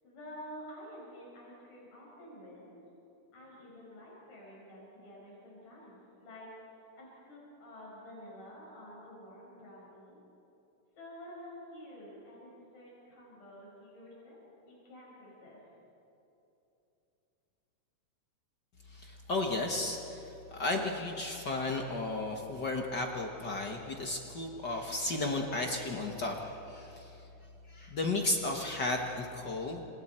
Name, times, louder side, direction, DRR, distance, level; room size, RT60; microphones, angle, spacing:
voice 1, 0.0-2.8 3.3-6.5 7.0-10.2 11.0-14.4 14.6-15.6, equal, 85° left, -5 dB, 7.1 m, -50 dB
voice 2, 18.9-27.2 27.7-29.9, left 2 dB, 50° left, 2 dB, 1.3 m, -34 dB
29.5 x 27.0 x 4.4 m, 2.9 s
omnidirectional pair, 3.7 m